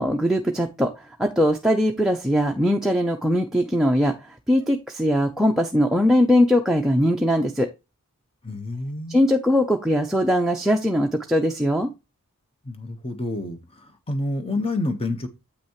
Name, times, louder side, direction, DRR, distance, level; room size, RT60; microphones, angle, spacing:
voice 1, 0.0-7.7 9.1-11.9, equal, ahead, 0.6 m, -21 dB
voice 2, 8.4-9.2 12.6-15.3, left 2 dB, 25° left, 1.1 m, -28 dB
8.3 x 6.0 x 2.9 m
head